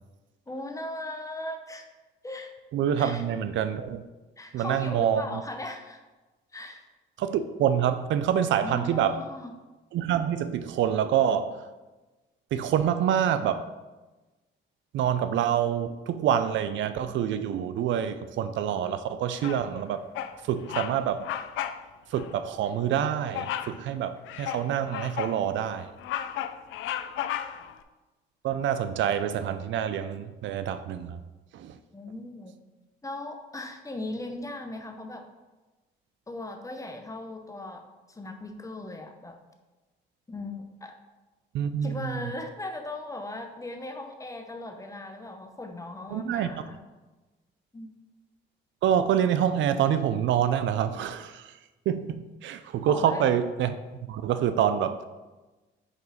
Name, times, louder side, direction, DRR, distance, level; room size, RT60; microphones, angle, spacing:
voice 1, 0.5-1.9 2.2-2.5 3.0-3.2 4.4-6.0 6.5-6.9 8.6-9.5 26.7-26.8 31.9-32.6 33.0-35.2 36.3-39.4 40.3-40.9 41.8-46.8 47.7-47.9 52.9-53.3, left 2 dB, 15° left, 5 dB, 0.8 m, -38 dB
voice 2, 2.7-4.0 4.5-5.2 7.2-9.2 9.9-11.6 12.5-13.7 14.9-20.0 20.4-21.3 22.1-25.9 28.4-31.2 31.5-31.8 41.5-42.3 46.1-46.6 48.8-51.5 51.9-53.7 54.1-55.0, right 9 dB, 70° right, 11 dB, 0.4 m, -26 dB
Bird vocalization bird call bird song, 19.4-19.8 20.1-20.4 20.7-20.9 21.2-21.8 22.1-22.3 23.3-23.8 24.3-25.4 25.8-27.7, left 11 dB, 80° left, 0.4 m, -33 dB
5.0 x 3.8 x 4.9 m, 1.2 s
cardioid pair, 90°, 20 cm